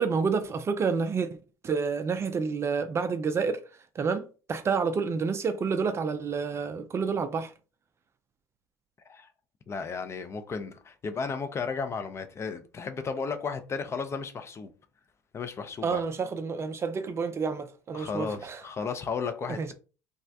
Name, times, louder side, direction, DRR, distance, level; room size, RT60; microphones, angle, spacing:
voice 1, 0.0-1.4 1.6-3.6 4.0-7.5 15.8-18.6 19.5-19.7, right 5 dB, 30° right, 0.3 m, -29 dB
voice 2, 9.7-14.7 15.3-16.0 17.9-19.7, left 5 dB, 30° left, 0.4 m, -34 dB
2.3 x 2.0 x 2.6 m
hypercardioid pair, 65°, 9 cm